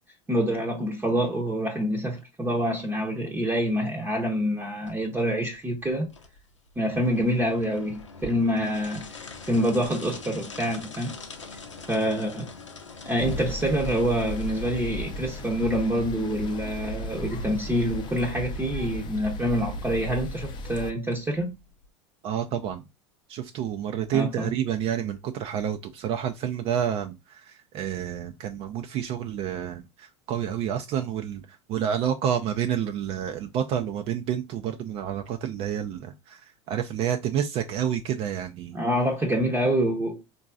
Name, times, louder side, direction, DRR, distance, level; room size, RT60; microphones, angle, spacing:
voice 1, 0.3-6.1 6.8-9.0 9.5-11.1 11.9-12.5 13.0-21.5 24.1-24.5 38.7-40.2, equal, 10° right, 0.7 m, -26 dB
sound 1, 4.9-21.9, left 4 dB, 90° left, 0.7 m, -45 dB
sound 2, 13.2-20.9, left 1 dB, 30° left, 0.6 m, -35 dB
voice 2, 22.2-22.8 23.3-38.8, right 9 dB, 40° right, 0.4 m, -29 dB
3.7 x 2.6 x 2.3 m
hypercardioid pair, 85°, 15 cm